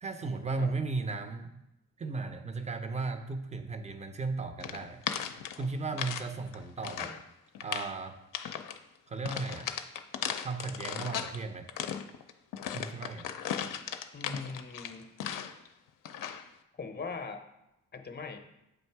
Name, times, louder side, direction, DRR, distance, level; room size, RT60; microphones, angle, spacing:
voice 1, 0.0-1.6 2.0-5.0 5.6-7.2 7.6-8.2 9.1-9.7 10.4-11.7 12.7-13.3, right 3 dB, 20° right, 8 dB, 0.6 m, -35 dB
sound 1, 4.6-6.3 6.5-7.2 7.5-7.9 8.3-8.8 9.2-11.4 11.7-15.7 16.0-16.5, left 9 dB, 70° left, 0.5 m, -37 dB
voice 2, 14.1-15.1 16.7-17.4 17.9-18.4, left 4 dB, 30° left, 7 dB, 0.7 m, -40 dB
7.9 x 2.6 x 4.6 m, 0.87 s
cardioid pair, 65°, 34 cm